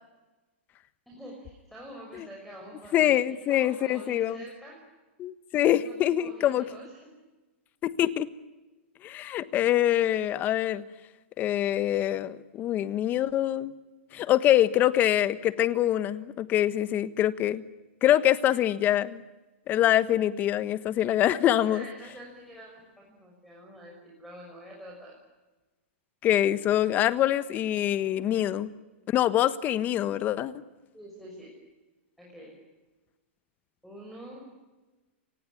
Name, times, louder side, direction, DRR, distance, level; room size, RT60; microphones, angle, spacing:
voice 1, 1.1-4.8 5.6-7.1 21.4-22.7 23.0-25.2 28.2-28.5 30.9-31.6 32.2-32.6 33.8-34.5, equal, ahead, -1 dB, 6.0 m, -46 dB
voice 2, 2.9-4.4 5.2-6.7 7.8-8.3 9.0-10.8 11.4-13.7 14.1-17.6 18.0-19.2 19.7-21.8 26.2-28.7 29.1-30.5, left 12 dB, 25° left, 15 dB, 1.3 m, -24 dB
29.5 x 19.5 x 9.8 m, 1.2 s
hypercardioid pair, 145°, 7 cm